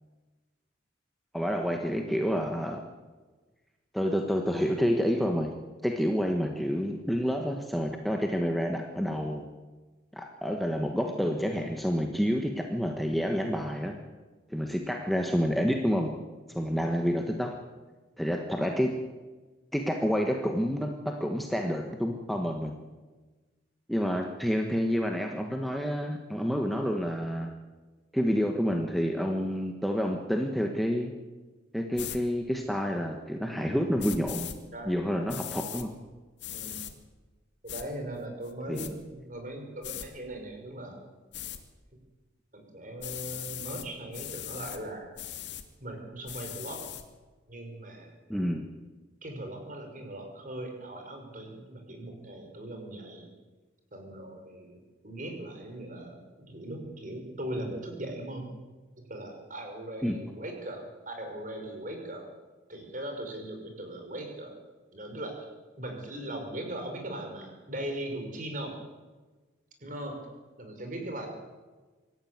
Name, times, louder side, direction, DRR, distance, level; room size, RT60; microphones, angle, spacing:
voice 1, 1.3-2.8 3.9-5.5 5.8-9.4 10.1-14.0 14.5-16.1 16.5-17.6 18.2-18.9 19.7-22.7 23.9-27.5 28.1-31.1 31.7-34.5 34.8-35.9 38.7-38.9 48.3-48.6 60.0-60.2, equal, ahead, 2 dB, 1.4 m, -29 dB
sound 1, 31.9-32.2 34.0-34.6 35.3-35.9 36.4-36.9 37.7-37.8 38.4-38.9 39.8-40.1 41.3-41.6 43.0-43.9 44.1-44.8 45.2-45.6 46.3-47.0, left 11 dB, 70° left, 2.2 m, -39 dB
voice 2, 34.7-35.6 36.5-36.8 37.6-41.0 42.5-45.1 45.8-46.8 47.5-48.1 49.2-53.3 53.9-58.5 59.1-62.3 62.7-64.6 64.9-65.5 65.8-68.8 69.8-70.2 70.6-71.3, right 1 dB, 40° right, 3 dB, 5.5 m, -39 dB
25.5 x 14.0 x 9.6 m, 1.3 s
head